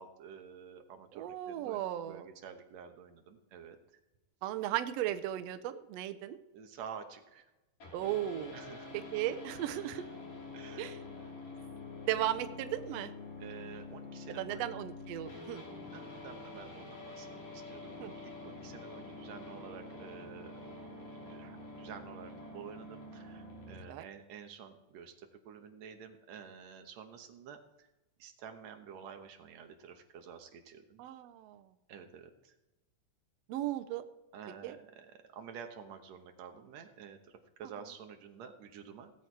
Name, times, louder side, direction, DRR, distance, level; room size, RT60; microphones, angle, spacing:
voice 1, 0.0-4.0 6.5-7.5 8.5-8.9 9.8-10.0 10.5-10.9 13.4-14.7 15.9-17.3 17.5-20.6 21.3-27.9 28.2-31.0 31.9-32.6 34.3-39.1, right 7 dB, 65° right, 6 dB, 2.2 m, -50 dB
voice 2, 1.1-2.3 4.4-6.4 7.9-8.5 9.1-10.1 10.8-11.0 12.1-13.1 14.4-15.6 18.0-18.1 23.9-24.0 31.0-31.6 33.5-34.0 34.6-34.7, right 13 dB, 85° right, 10 dB, 1.4 m, -36 dB
sound 1, 7.8-23.8, left 3 dB, 60° left, 4.3 m, -47 dB
18.0 x 7.9 x 4.6 m, 1.0 s
omnidirectional pair, 3.7 m